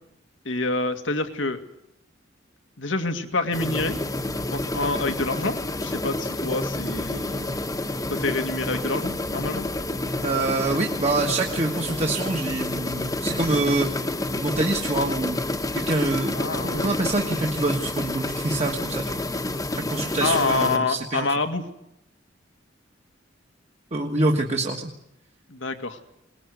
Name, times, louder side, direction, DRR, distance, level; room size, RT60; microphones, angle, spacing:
voice 1, 0.5-1.6 2.8-4.0 4.5-7.5 8.1-9.7 16.3-16.9 20.2-21.6 25.5-26.0, left 3 dB, 90° left, 7 dB, 2.0 m, -27 dB
sound 1, 3.5-20.8, left 2 dB, 20° left, 1.2 m, -29 dB
voice 2, 10.2-14.1 14.4-15.4 15.7-16.4 16.6-19.2 19.7-21.3 23.9-24.9, right 2 dB, 35° right, 1 dB, 1.6 m, -26 dB
22.5 x 20.0 x 9.4 m, 0.84 s
head